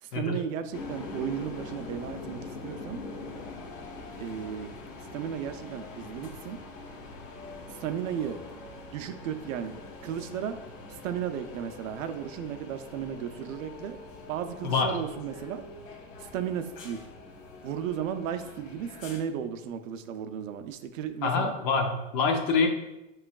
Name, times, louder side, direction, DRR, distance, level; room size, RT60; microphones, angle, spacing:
voice 1, 0.0-3.0 4.2-4.7 5.1-6.6 7.7-8.4 8.9-9.8 10.0-10.6 10.9-14.0 14.3-15.6 16.2-17.0 17.6-21.5, right 9 dB, 75° right, 9 dB, 0.5 m, -34 dB
sound 1, 0.7-19.2, left 3 dB, 80° left, 0.9 m, -43 dB
voice 2, 14.6-15.0 21.2-22.7, left 4 dB, 35° left, 4 dB, 0.4 m, -26 dB
5.0 x 3.1 x 2.3 m, 0.96 s
supercardioid pair, 140°, 39 cm